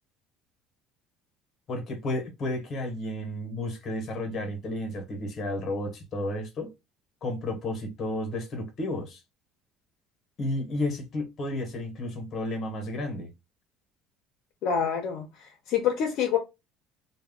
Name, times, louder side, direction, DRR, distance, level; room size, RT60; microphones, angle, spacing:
voice 1, 1.7-6.7 7.2-9.2 10.4-13.3, left 1 dB, 35° left, 0.8 m, -32 dB
voice 2, 14.6-15.3 15.7-16.4, left 8 dB, 55° left, 0.5 m, -26 dB
2.1 x 2.0 x 3.5 m
cardioid pair, 160°, 0 cm